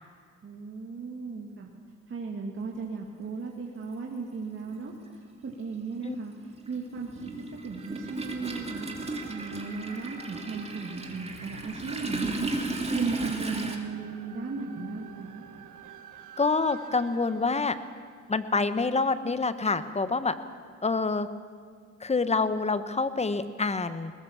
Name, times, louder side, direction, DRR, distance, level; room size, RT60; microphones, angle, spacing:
voice 1, 0.4-1.7 2.1-4.9 5.4-6.3 6.7-7.3 7.6-8.9 9.3-12.5 12.9-15.4, right 4 dB, 40° right, 0 dB, 2.4 m, -36 dB
Toilet flush, 3.3-3.4 4.6-4.8 5.1-13.8, right 2 dB, 20° right, 2.7 m, -35 dB
sound 1, 7.8-19.0, right 9 dB, 85° right, 1.6 m, -49 dB
voice 2, 16.4-17.8 18.3-20.3 20.8-21.3 22.0-24.1, left 4 dB, 20° left, 12 dB, 1.2 m, -27 dB
20.5 x 20.0 x 7.3 m, 2.1 s
cardioid pair, 90°, 30 cm